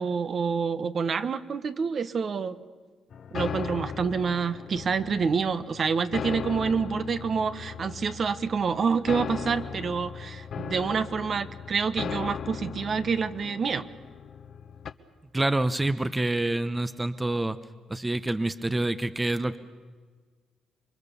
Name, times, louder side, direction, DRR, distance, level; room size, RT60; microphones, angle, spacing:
voice 1, 0.0-2.6 3.3-13.9, right 5 dB, 50° right, 11 dB, 1.2 m, -27 dB
sound 1, 3.1-14.9, left 7 dB, 60° left, 1.2 m, -38 dB
voice 2, 15.3-17.6 17.9-19.6, right 2 dB, 15° right, 12 dB, 0.9 m, -27 dB
27.0 x 23.5 x 7.0 m, 1.5 s
cardioid pair, 90°, 0 cm